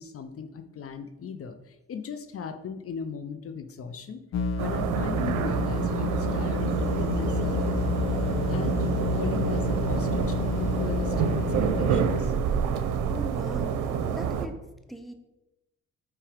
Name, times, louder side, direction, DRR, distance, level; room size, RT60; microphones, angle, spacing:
voice 1, 0.0-4.2 4.6-7.6 8.5-11.3 11.6-12.3, left 6 dB, 50° left, 9 dB, 0.7 m, -38 dB
sound 1, 4.3-12.4, left 4 dB, 65° left, 1.2 m, -31 dB
sound 2, 4.6-14.5, right 7 dB, 90° right, 0.7 m, -28 dB
sound 3, 6.6-13.1, left 3 dB, 85° left, 1.6 m, -35 dB
voice 2, 13.1-14.5 14.9-15.1, right 1 dB, ahead, 7 dB, 0.7 m, -39 dB
5.8 x 4.8 x 5.0 m, 0.96 s
cardioid pair, 90°, 30 cm